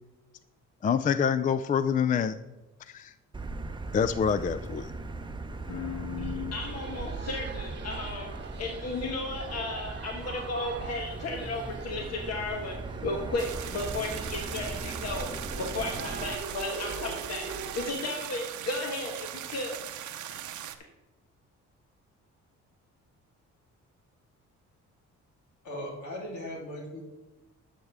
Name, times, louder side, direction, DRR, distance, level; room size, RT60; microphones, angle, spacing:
voice 1, 0.8-2.4 2.9-3.1 3.9-4.9, left 7 dB, 25° left, 13 dB, 0.3 m, -26 dB
Motor vehicle (road), 3.3-16.3, right 3 dB, 15° right, 0.7 m, -39 dB
voice 2, 5.7-8.3 8.6-12.7 13.0-15.3 15.6-17.5 17.7-19.8, left 2 dB, 55° left, 2 dB, 1.3 m, -34 dB
sound 1, 6.6-17.9, right 5 dB, 35° right, 1.0 m, -43 dB
sound 2, 13.4-20.8, right 11 dB, 75° right, 0.7 m, -40 dB
voice 3, 25.6-27.0, left 1 dB, 75° left, -2 dB, 3.3 m, -38 dB
11.5 x 6.7 x 3.5 m, 1.1 s
cardioid pair, 90°, 30 cm